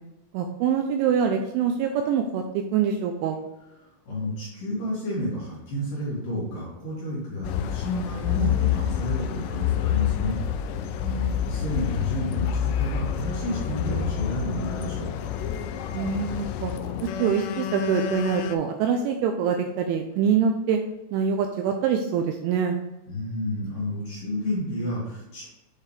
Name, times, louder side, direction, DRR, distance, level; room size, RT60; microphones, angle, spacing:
voice 1, 0.3-2.4 2.7-3.4 11.0-11.4 15.9-16.7 17.2-20.8 21.1-22.8, right 7 dB, 85° right, 4 dB, 2.8 m, -25 dB
voice 2, 4.1-10.4 11.5-15.1 23.1-25.5, left 1 dB, 50° left, -7 dB, 3.2 m, -31 dB
sound 1, 7.4-18.6, left 9 dB, 85° left, 2.9 m, -28 dB
8.5 x 4.6 x 3.3 m, 0.97 s
omnidirectional pair, 5.8 m